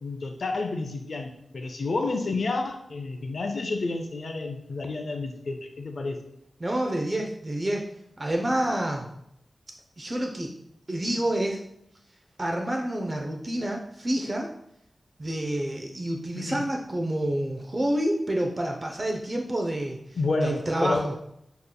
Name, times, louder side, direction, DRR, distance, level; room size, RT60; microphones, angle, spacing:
voice 1, 0.0-6.2 16.4-16.6 20.2-21.1, left 3 dB, 70° left, 5 dB, 0.4 m, -30 dB
voice 2, 6.6-7.8 8.2-9.1 10.0-10.5 10.9-11.6 12.4-14.5 15.2-20.0 20.4-21.1, right 1 dB, 30° right, 1 dB, 0.5 m, -28 dB
6.4 x 2.8 x 2.2 m, 0.75 s
wide cardioid pair, 95°, 0 cm